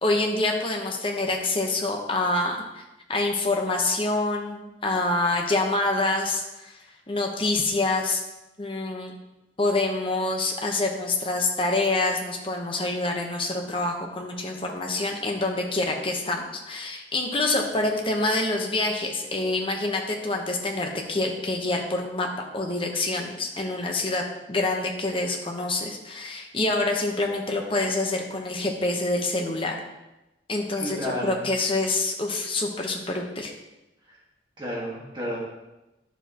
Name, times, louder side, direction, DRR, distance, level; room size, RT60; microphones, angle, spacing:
voice 1, 0.0-2.8 3.1-6.7 7.1-8.2 8.6-9.1 9.6-22.3 22.5-24.2 24.5-29.8 30.5-33.5, left 2 dB, 30° left, 1 dB, 1.1 m, -26 dB
voice 2, 30.8-31.4 34.1-34.2 34.6-35.4, equal, 25° right, -5 dB, 1.7 m, -32 dB
10.5 x 7.1 x 3.0 m, 0.98 s
head